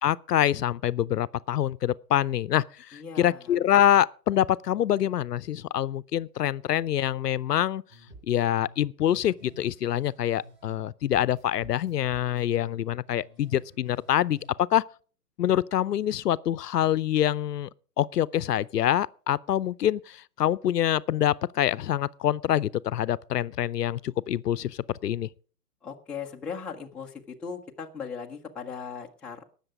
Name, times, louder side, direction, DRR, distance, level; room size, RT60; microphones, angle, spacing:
voice 1, 0.0-7.8 8.3-14.8 15.4-17.7 18.0-25.3, left 11 dB, 75° left, 0.6 m, -25 dB
voice 2, 2.9-3.4 25.8-29.4, left 6 dB, ahead, 0.5 m, -38 dB
sound 1, 7.9-10.8 11.1-14.5, right 1 dB, 25° right, 4.9 m, -52 dB
18.5 x 6.8 x 4.8 m
hypercardioid pair, 125°, 48 cm